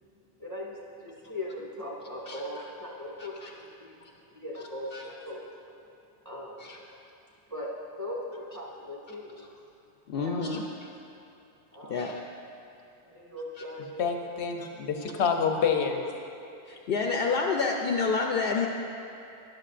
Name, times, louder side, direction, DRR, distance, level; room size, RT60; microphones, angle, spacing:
voice 1, 0.4-4.1 4.3-5.4 6.3-6.7 7.5-7.7 8.0-9.4 10.2-10.4 11.7-12.0 13.0-14.1, left 1 dB, 15° right, -5 dB, 1.7 m, -39 dB
voice 2, 3.2-3.5 4.0-4.1 4.9-5.1 6.6-6.8 10.1-10.9 11.9-12.2 13.6-13.7 14.6-14.7 15.0-15.1 15.6-15.7 16.6-18.7, left 4 dB, 65° left, 1 dB, 0.8 m, -29 dB
voice 3, 14.0-16.0, left 6 dB, 85° left, 4 dB, 1.0 m, -27 dB
13.0 x 10.5 x 2.5 m, 2.7 s
omnidirectional pair, 1.1 m